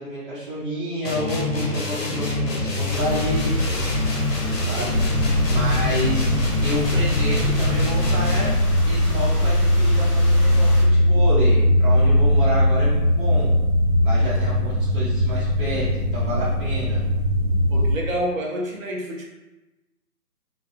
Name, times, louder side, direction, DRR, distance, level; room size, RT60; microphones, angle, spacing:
voice 1, 0.0-3.6 4.6-5.0 5.5-6.3 6.6-8.5 8.8-13.5 14.0-17.0, right 1 dB, 35° right, -10 dB, 0.9 m, -29 dB
sound 1, 1.1-8.7, left 2 dB, 85° left, 0.8 m, -25 dB
sound 2, 2.9-10.8, left 1 dB, 35° left, 0.7 m, -31 dB
sound 3, 4.9-17.9, left 1 dB, 55° left, 1.0 m, -20 dB
voice 2, 17.7-19.2, right 1 dB, 55° right, -1 dB, 0.6 m, -28 dB
2.3 x 2.3 x 2.3 m, 1.1 s
figure-of-eight pair, 155°, 48 cm